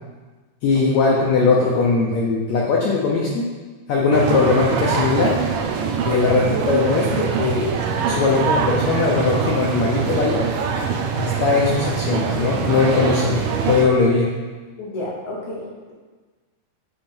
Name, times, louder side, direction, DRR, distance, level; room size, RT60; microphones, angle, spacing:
voice 1, 0.6-3.5 3.9-5.4 6.1-7.7 8.1-10.4 11.2-14.3, left 4 dB, 85° left, -4 dB, 1.5 m, -19 dB
sound 1, 4.1-13.9, right 6 dB, 80° right, 2.2 m, -23 dB
voice 2, 14.8-15.9, left 1 dB, 65° left, -4 dB, 2.3 m, -31 dB
9.8 x 3.3 x 4.2 m, 1.3 s
omnidirectional pair, 4.1 m